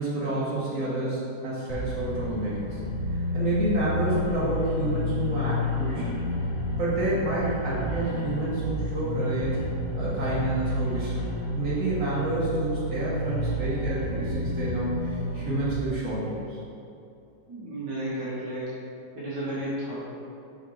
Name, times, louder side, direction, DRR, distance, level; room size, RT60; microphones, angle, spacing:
voice 1, 0.0-2.8 3.1-6.2 6.8-9.6 9.9-11.2 11.6-16.6, right 2 dB, 50° right, -8 dB, 2.0 m, -29 dB
sound 1, 1.7-15.7, left 1 dB, 25° left, 0.8 m, -30 dB
voice 2, 17.5-18.7 19.2-20.0, right 1 dB, 70° right, -8 dB, 1.8 m, -32 dB
5.7 x 4.3 x 4.5 m, 2.6 s
omnidirectional pair, 1.9 m